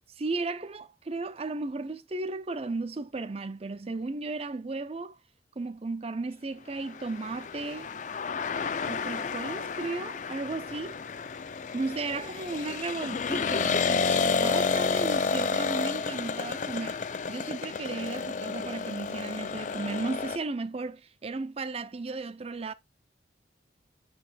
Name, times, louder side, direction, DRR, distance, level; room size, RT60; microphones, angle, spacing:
voice 1, 0.2-5.2 5.6-7.9 8.9-11.0 11.7-22.7, right 3 dB, 30° right, 0.4 m, -35 dB
sound 1, 6.9-20.4, left 5 dB, 40° left, 0.4 m, -31 dB
9.2 x 4.7 x 2.3 m
head